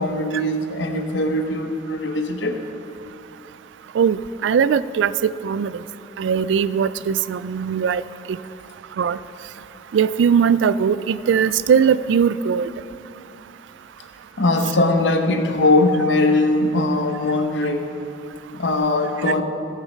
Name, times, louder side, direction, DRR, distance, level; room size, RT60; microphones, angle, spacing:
voice 1, 0.0-2.6 14.4-17.9 18.5-19.4, left 2 dB, 90° left, 6 dB, 0.9 m, -20 dB
voice 2, 3.9-5.7 6.2-8.0 9.0-9.2 9.9-12.7, right 7 dB, 90° right, 17 dB, 0.3 m, -19 dB
13.0 x 7.5 x 5.2 m, 2.8 s
head